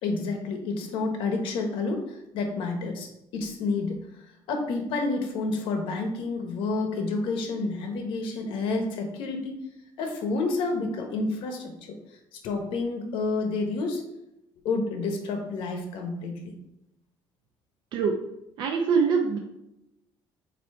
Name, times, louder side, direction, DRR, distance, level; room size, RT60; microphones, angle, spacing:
voice 1, 0.0-4.2 4.5-9.6 10.0-11.9 12.3-14.0 14.6-16.6, left 3 dB, 70° left, 4 dB, 1.2 m, -29 dB
voice 2, 18.6-19.4, right 5 dB, 60° right, 2 dB, 0.6 m, -23 dB
8.1 x 2.9 x 4.3 m, 0.87 s
cardioid pair, 170°, 9 cm